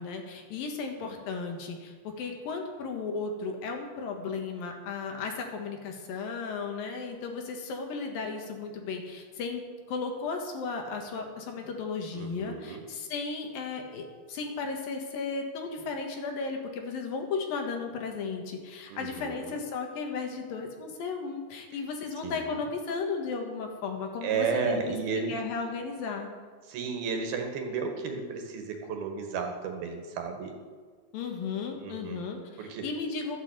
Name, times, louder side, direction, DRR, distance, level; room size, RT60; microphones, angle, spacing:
voice 1, 0.0-25.0 25.3-26.3 31.1-33.4, left 4 dB, 70° left, 3 dB, 3.2 m, -35 dB
voice 2, 12.1-12.8 18.9-19.6 22.2-22.6 24.2-25.4 26.7-30.5 31.7-32.3 32.6-32.9, right 5 dB, 75° right, 4 dB, 3.5 m, -33 dB
12.5 x 8.9 x 8.0 m, 1.5 s
omnidirectional pair, 4.4 m